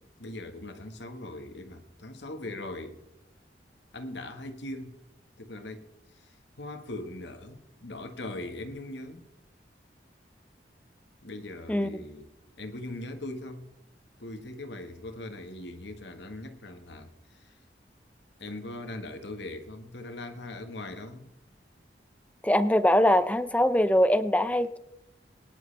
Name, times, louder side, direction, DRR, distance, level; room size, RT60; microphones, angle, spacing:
voice 1, 0.2-3.0 3.9-5.0 5.4-9.3 11.2-12.3 12.6-13.7 14.2-17.6 18.4-21.3, left 2 dB, 80° left, 1.5 m, -40 dB
voice 2, 22.4-24.8, left 1 dB, 10° left, 0.5 m, -22 dB
22.5 x 11.0 x 3.4 m
head